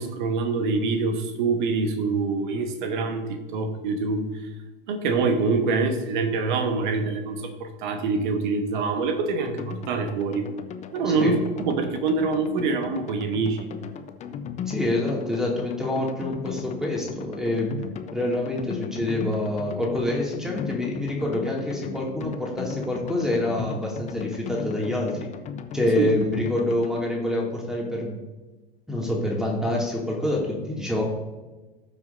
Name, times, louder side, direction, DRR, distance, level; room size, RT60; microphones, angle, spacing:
voice 1, 0.0-4.3 4.9-10.5 10.9-13.7 26.0-26.1, right 4 dB, 55° right, 7 dB, 1.3 m, -25 dB
sound 1, 9.4-27.1, left 7 dB, 25° left, 0.6 m, -37 dB
voice 2, 14.6-17.8 18.1-25.3 25.7-28.2 28.9-31.0, left 1 dB, ahead, -2 dB, 2.4 m, -26 dB
17.5 x 6.0 x 2.6 m, 1.2 s
figure-of-eight pair, 85°, 29 cm